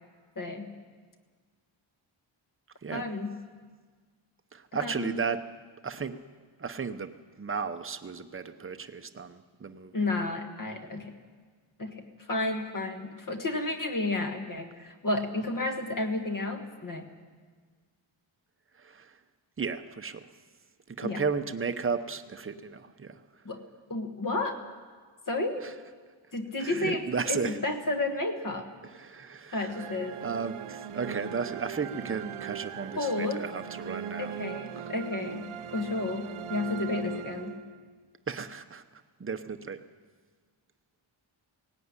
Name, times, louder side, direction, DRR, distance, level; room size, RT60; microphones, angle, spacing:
voice 1, 0.3-0.7 2.9-3.4 4.7-5.2 9.9-11.1 11.8-17.1 21.0-21.2 23.4-23.6 23.9-24.6 25.3-25.6 26.3-28.7 29.5-30.2 33.0-33.4 34.2-37.6, left 2 dB, 40° left, 4 dB, 1.6 m, -32 dB
voice 2, 4.5-5.4 5.8-6.2 6.6-9.9 18.8-19.1 19.6-20.3 20.9-23.2 25.6-25.7 26.6-27.6 28.9-29.7 30.2-34.3 34.8-34.9 38.3-38.8 39.2-39.8, right 5 dB, 25° right, 9 dB, 0.8 m, -34 dB
sound 1, 29.7-38.0, right 8 dB, 90° right, 0.8 m, -39 dB
17.5 x 17.5 x 9.7 m, 1.5 s
wide cardioid pair, 180°, 48 cm